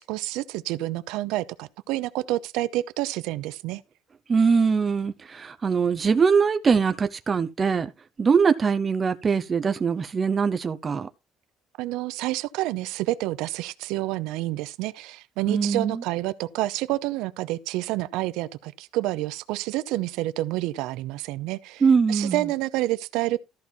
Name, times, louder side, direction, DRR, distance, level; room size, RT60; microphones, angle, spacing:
voice 1, 0.0-3.8 11.8-21.8 22.1-23.4, right 17 dB, 85° right, 0.7 m, -28 dB
voice 2, 4.3-7.9 8.2-11.1 15.5-16.0 21.8-22.4, right 5 dB, 25° right, 0.8 m, -22 dB
14.0 x 5.4 x 4.6 m
cardioid pair, 160°, 0 cm